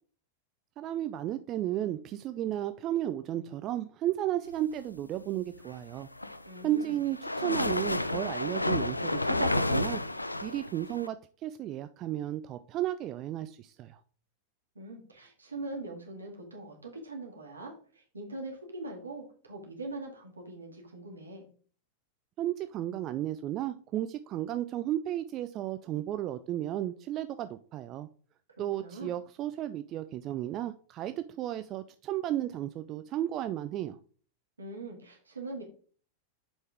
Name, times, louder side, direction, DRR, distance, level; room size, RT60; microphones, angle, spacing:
voice 1, 0.8-6.1 6.6-10.0 10.4-14.0 22.4-28.1 28.6-34.0, right 12 dB, 35° right, 11 dB, 0.4 m, -33 dB
sound 1, 6.0-11.1, left 2 dB, 85° left, 0.4 m, -30 dB
voice 2, 6.4-7.0 14.8-21.5 28.8-29.1 34.6-35.6, right 2 dB, 75° right, 1 dB, 2.1 m, -42 dB
7.5 x 5.4 x 3.5 m, 0.43 s
figure-of-eight pair, 90°, 0 cm